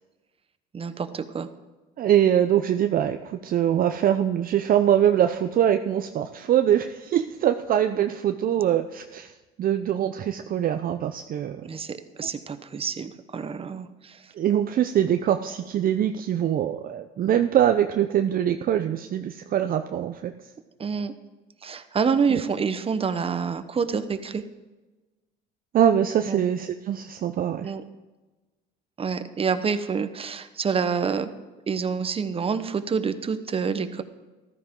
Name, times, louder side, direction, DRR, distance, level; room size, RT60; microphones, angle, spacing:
voice 1, 0.7-1.5 11.6-14.2 20.8-21.1 21.6-24.4 26.2-26.4 27.6-27.8 29.0-31.3 31.7-34.0, right 6 dB, 25° right, 10 dB, 1.0 m, -27 dB
voice 2, 2.0-9.3 9.6-11.7 14.4-20.3 22.3-22.4 25.7-27.7, right 10 dB, 45° right, 8 dB, 0.6 m, -23 dB
14.0 x 13.0 x 3.8 m, 1.2 s
supercardioid pair, 90°, 21 cm